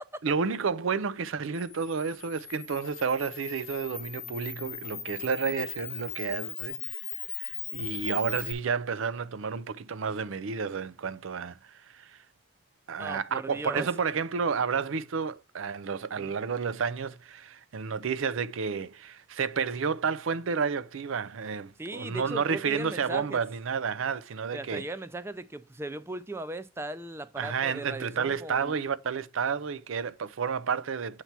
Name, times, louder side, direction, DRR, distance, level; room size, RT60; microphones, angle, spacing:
voice 1, 0.2-7.0 7.3-12.2 12.9-24.9 27.4-31.2, right 6 dB, 75° right, 0.5 m, -31 dB
Camera, 1.5-8.5, left 8 dB, 25° left, 0.7 m, -39 dB
voice 2, 13.0-13.9 16.2-16.3 21.8-23.4 24.5-28.7, right 2 dB, 10° right, 0.4 m, -38 dB
7.9 x 2.9 x 5.8 m
head